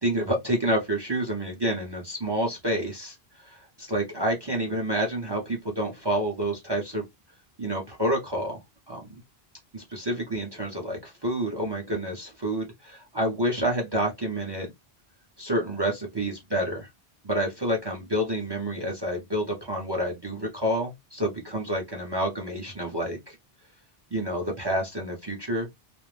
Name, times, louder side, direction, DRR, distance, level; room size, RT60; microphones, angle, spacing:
voice 1, 0.0-7.0 7.6-8.6 8.9-9.2 9.7-14.7 15.4-16.9 17.2-23.4 24.1-25.7, right 1 dB, 30° right, 0.6 m, -28 dB
2.4 x 2.0 x 3.1 m
omnidirectional pair, 1.1 m